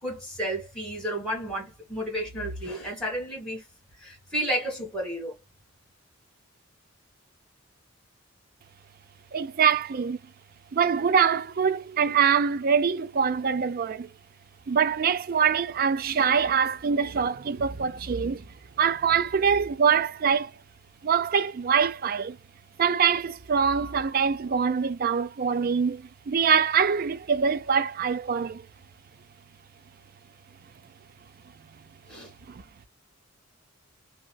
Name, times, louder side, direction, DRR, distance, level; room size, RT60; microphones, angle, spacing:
voice 1, 0.0-3.6 4.0-5.3 32.1-32.3, equal, 5° left, 2.1 m, -32 dB
voice 2, 9.3-10.2 10.7-14.1 14.7-18.4 18.8-20.5 21.0-22.4 22.8-28.6 32.5-32.6, right 6 dB, 45° right, 0.4 m, -24 dB
3.1 x 2.8 x 2.2 m
head